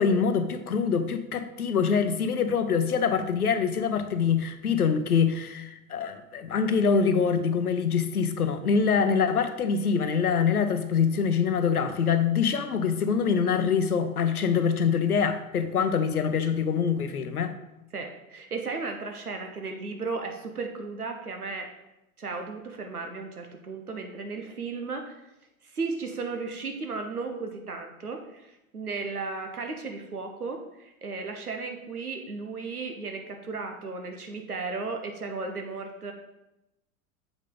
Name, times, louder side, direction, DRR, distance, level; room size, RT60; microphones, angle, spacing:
voice 1, 0.0-17.6, left 6 dB, 80° left, 10 dB, 0.7 m, -25 dB
voice 2, 17.9-21.7 22.2-25.2 25.6-36.1, right 4 dB, 85° right, 4 dB, 1.0 m, -35 dB
7.3 x 5.2 x 3.9 m, 0.92 s
figure-of-eight pair, 90°, 44 cm